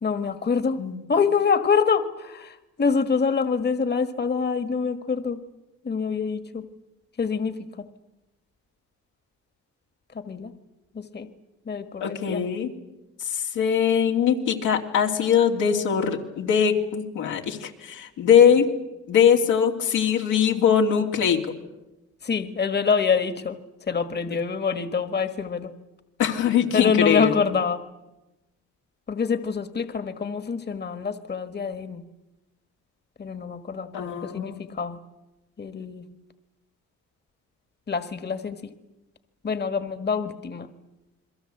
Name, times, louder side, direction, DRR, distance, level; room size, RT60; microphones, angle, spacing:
voice 1, 0.0-0.8 1.1-5.4 5.8-6.6 7.2-7.9 10.1-10.5 10.9-11.3 11.7-12.4 22.2-23.6 23.9-25.7 26.7-27.8 29.1-32.0 33.2-35.0 35.6-36.1 37.9-38.6 39.4-40.7, left 5 dB, 35° left, 10 dB, 1.6 m, -26 dB
voice 2, 12.0-12.7 13.3-18.7 19.1-21.4 26.2-27.5 33.9-34.7, left 8 dB, 85° left, 1 dB, 3.1 m, -21 dB
29.0 x 22.0 x 8.0 m, 1.0 s
cardioid pair, 90°, 30 cm